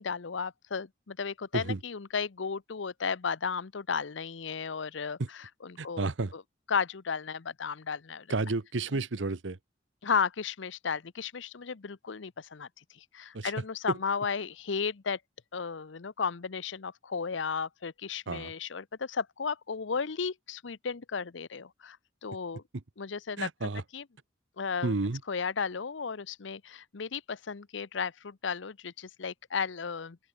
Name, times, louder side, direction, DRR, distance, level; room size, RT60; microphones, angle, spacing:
voice 1, 0.0-6.4 6.7-8.3 10.0-12.7 12.9-15.2 15.5-22.0 22.2-22.6 23.0-24.0 24.6-24.9 25.3-30.2, left 5 dB, 70° left, 0.7 m, -34 dB
voice 2, 5.8-6.3 8.3-9.6 13.3-13.5 13.9-14.0 18.3-18.5 23.4-23.8 24.8-25.2, right 3 dB, 70° right, 0.9 m, -31 dB
open air
head